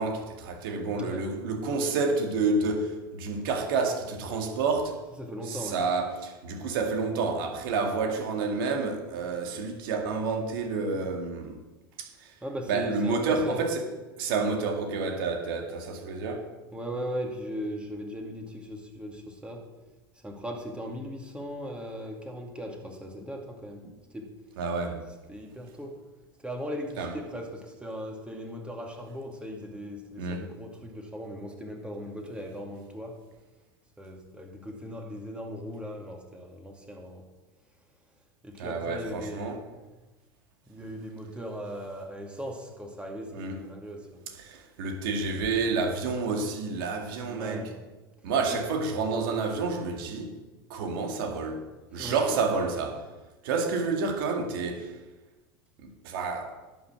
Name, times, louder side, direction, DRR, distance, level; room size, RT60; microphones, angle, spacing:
voice 1, 0.0-5.0 5.4-11.6 12.0-12.3 12.7-13.9 14.2-16.5 24.6-25.0 27.0-27.1 30.2-30.5 38.6-39.6 43.3-43.6 44.4-47.7 48.2-50.3 50.7-51.6 51.9-53.0 53.4-55.0 55.8-56.5, right 4 dB, 65° right, 2.1 m, -29 dB
voice 2, 0.9-1.2 5.2-5.8 12.4-13.6 16.7-19.6 20.2-23.8 24.1-24.3 25.3-26.0 26.4-33.2 34.0-37.2 38.4-39.6 40.7-44.2 47.2-47.7 48.5-48.6 51.9-52.2 52.5-52.6, equal, 10° right, 2.3 m, -38 dB
11.0 x 6.1 x 7.6 m
hypercardioid pair, 85°, 13 cm